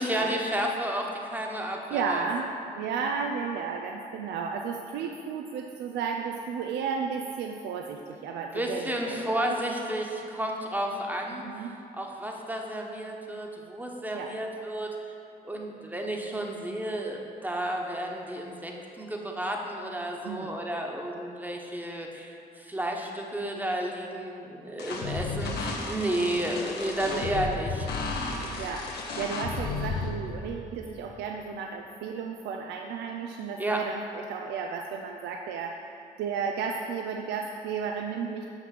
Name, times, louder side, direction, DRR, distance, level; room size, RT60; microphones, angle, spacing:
voice 1, 0.0-2.3 8.5-11.7 11.9-14.9 15.4-27.9 33.6-33.8, right 1 dB, 10° right, 1 dB, 1.1 m, -32 dB
voice 2, 1.9-2.5 2.7-9.6 11.4-11.7 14.1-14.3 20.2-20.6 28.6-28.9 29.2-35.8 36.2-38.5, right 6 dB, 85° right, 3 dB, 0.4 m, -33 dB
sound 1, 24.8-30.1, left 3 dB, 75° left, 1.0 m, -33 dB
6.0 x 5.9 x 5.9 m, 2.6 s
supercardioid pair, 65°, 17 cm